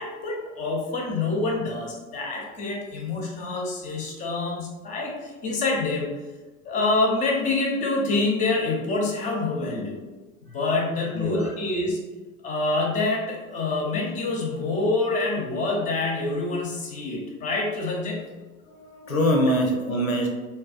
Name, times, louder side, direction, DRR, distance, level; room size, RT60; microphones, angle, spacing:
voice 1, 0.0-6.1 6.6-10.0 10.5-12.0 12.4-18.3, left 3 dB, 20° left, -1 dB, 0.5 m, -26 dB
voice 2, 11.1-11.5 18.7-20.3, equal, 85° left, 1 dB, 0.6 m, -24 dB
3.4 x 2.2 x 2.4 m, 1.2 s
figure-of-eight pair, 85°, 40 cm